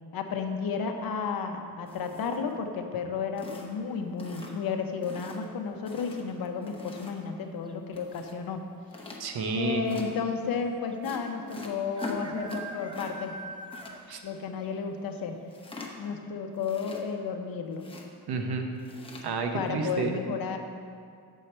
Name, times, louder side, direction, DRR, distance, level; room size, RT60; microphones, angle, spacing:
voice 1, 0.1-8.6 9.5-13.4 14.2-15.4 16.0-17.9 19.5-20.6, left 5 dB, 60° left, 5 dB, 0.8 m, -32 dB
sound 1, 1.9-2.6 3.0-3.1 3.4-3.9 4.2-4.7 5.0-5.4 5.9-7.3 7.9-8.4 8.9-9.2 9.9-10.1 11.0-13.1 13.4-13.9 15.5-16.1 16.6-17.3 17.7-18.1 18.8-19.2, left 3 dB, 15° left, 0.8 m, -42 dB
sound 2, 4.4-4.9 6.7-7.1 7.3-7.4 7.7-8.2 9.0-9.1 9.3-9.4 10.9-11.0 11.9-14.2 14.6-14.7 15.2-15.3 15.7-15.8, right 2 dB, 15° right, 0.4 m, -44 dB
voice 2, 9.2-9.8 14.1-14.2 18.3-18.7 19.2-20.1, right 4 dB, 65° right, 4 dB, 1.0 m, -30 dB
8.0 x 6.5 x 4.4 m, 2.3 s
cardioid pair, 145°, 41 cm